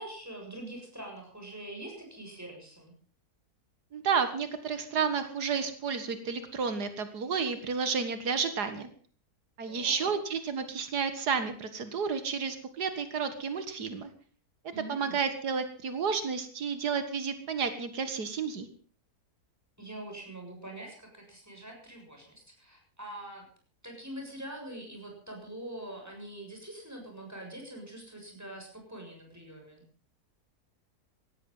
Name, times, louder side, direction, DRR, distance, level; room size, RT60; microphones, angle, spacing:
voice 1, 0.0-2.9 9.7-10.1 14.7-15.2 19.8-23.4 23.8-29.8, right 1 dB, 10° right, 1 dB, 7.0 m, -44 dB
voice 2, 3.9-8.9 9.6-14.1 14.9-18.7, right 6 dB, 85° right, 9 dB, 2.2 m, -31 dB
17.5 x 14.5 x 5.6 m, 0.42 s
omnidirectional pair, 1.7 m